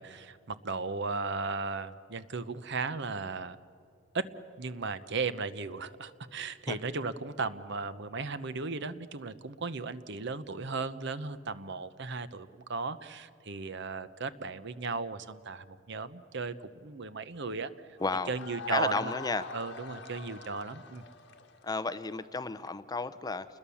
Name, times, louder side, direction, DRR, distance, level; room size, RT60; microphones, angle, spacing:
voice 1, 0.0-3.6 4.1-4.3 4.6-18.0 18.3-19.1 19.5-21.0, right 4 dB, 55° right, 13 dB, 0.9 m, -36 dB
sound 1, 18.0-22.7, left 4 dB, 55° left, 1.8 m, -45 dB
voice 2, 18.0-18.3 18.7-19.4 21.6-23.6, left 3 dB, 20° left, 12 dB, 0.6 m, -32 dB
29.0 x 21.5 x 7.1 m, 2.3 s
head